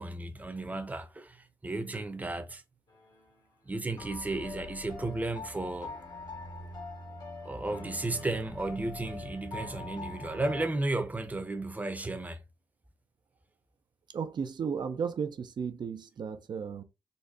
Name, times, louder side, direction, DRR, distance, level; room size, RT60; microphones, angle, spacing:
voice 1, 0.0-2.6 3.7-5.9 7.4-12.4, right 2 dB, 20° right, 0.8 m, -34 dB
sound 1, 2.9-3.4 4.0-10.7, left 3 dB, 65° left, 1.5 m, -43 dB
voice 2, 14.1-16.8, right 6 dB, 65° right, 0.6 m, -34 dB
4.0 x 2.1 x 3.5 m
cardioid pair, 50°, 8 cm